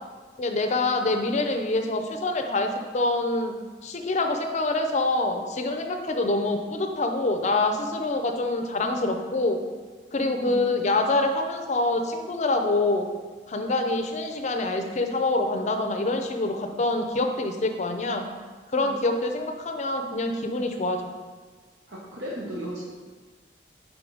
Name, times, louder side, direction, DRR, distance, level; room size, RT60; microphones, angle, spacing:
voice 1, 0.4-3.5 3.8-9.6 10.1-13.1 13.5-18.3 18.7-21.1, left 2 dB, 40° left, 5 dB, 0.5 m, -26 dB
voice 2, 10.4-10.7 18.7-19.1 21.9-22.8, equal, 70° right, -6 dB, 1.0 m, -36 dB
5.0 x 4.8 x 3.8 m, 1.4 s
head